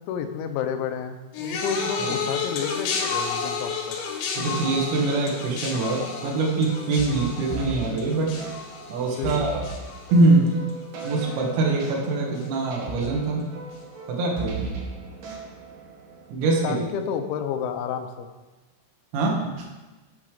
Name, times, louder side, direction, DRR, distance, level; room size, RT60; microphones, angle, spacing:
voice 1, 0.1-4.0 9.2-9.5 16.6-18.3, left 7 dB, 90° left, 7 dB, 3.7 m, -30 dB
sound 1, 1.3-10.7 11.0-11.5 12.4-12.5, left 5 dB, 70° left, 3.4 m, -32 dB
voice 2, 4.4-8.3 8.9-9.5 10.1-10.6 11.0-13.5 14.1-14.7 16.3-16.9 19.1-19.7, right 3 dB, 85° right, -1 dB, 4.5 m, -23 dB
sound 2, 4.8-16.3, right 3 dB, 60° right, 2.4 m, -37 dB
12.5 x 7.9 x 5.0 m, 1.2 s
omnidirectional pair, 6.0 m